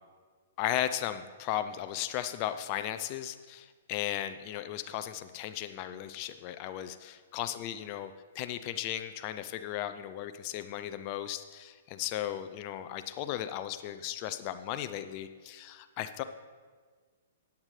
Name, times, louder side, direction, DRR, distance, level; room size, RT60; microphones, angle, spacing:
voice 1, 0.6-16.2, left 12 dB, 40° left, 10 dB, 0.5 m, -36 dB
14.0 x 9.1 x 3.2 m, 1.5 s
hypercardioid pair, 135°, 0 cm